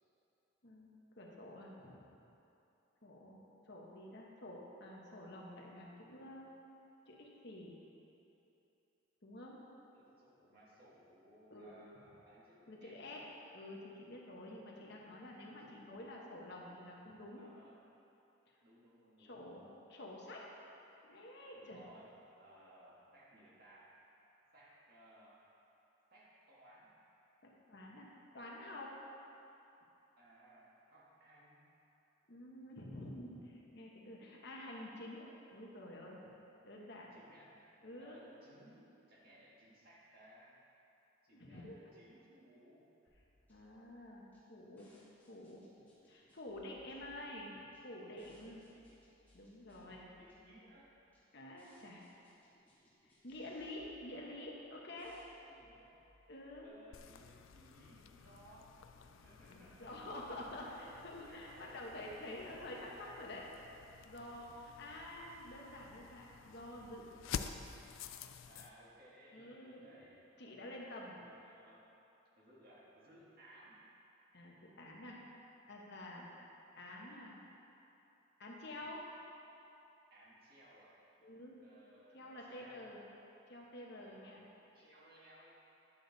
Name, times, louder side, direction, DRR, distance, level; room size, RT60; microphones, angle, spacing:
voice 1, 1.2-2.0 3.0-6.6 7.1-7.7 9.2-9.6 11.5-11.8 12.7-13.2 13.5-17.5 19.2-20.4 21.0-21.8 27.4-28.1 28.3-28.9 32.3-36.2 36.6-37.1 37.8-38.2 41.3-41.9 43.5-44.9 45.3-45.7 46.1-47.5 47.8-48.6 49.3-50.1 51.3-52.0 53.0-55.1 56.3-56.7 59.5-63.4 64.1-67.1 69.3-69.9 70.4-71.1 74.3-75.2 75.7-76.3 76.8-77.3 78.4-79.0 81.2-81.6 82.1-83.0 83.5-84.4, left 1 dB, 55° left, -2 dB, 1.1 m, -49 dB
voice 2, 9.9-13.2 14.5-14.6 14.9-15.0 15.3-15.8 17.3-17.8 18.6-19.5 21.5-23.9 24.5-25.4 26.1-26.9 30.2-31.7 36.8-37.6 38.0-40.5 41.2-42.8 48.5-49.0 49.7-50.9 55.3-56.1 56.6-60.0 60.6-61.9 62.3-62.9 68.4-70.5 71.2-71.8 72.4-73.8 80.1-81.0 81.6-82.2 82.5-82.9 84.0-84.4 84.7-85.6, right 1 dB, 45° right, -7 dB, 1.9 m, -62 dB
sound 1, 43.1-56.7, left 1 dB, 10° left, 1.5 m, -70 dB
sound 2, 56.9-68.7, left 7 dB, 75° left, 0.4 m, -50 dB
10.0 x 6.7 x 4.0 m, 2.9 s
head